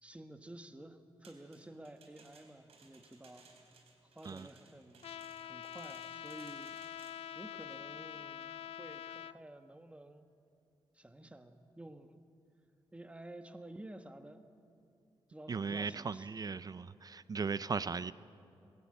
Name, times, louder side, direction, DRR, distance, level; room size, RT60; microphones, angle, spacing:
voice 1, 0.0-3.5 4.1-5.1 5.4-6.8 7.3-10.3 10.9-12.2 12.9-14.4 15.3-16.4, right 1 dB, 10° right, 8 dB, 1.4 m, -52 dB
sound 1, 1.2-7.3, right 4 dB, 80° right, 3.7 m, -62 dB
Trumpet, 5.0-9.3, left 10 dB, 75° left, 0.4 m, -45 dB
voice 2, 15.5-18.1, right 5 dB, 40° right, 15 dB, 0.5 m, -37 dB
21.5 x 16.5 x 8.9 m, 2.6 s
cardioid pair, 85°, 10 cm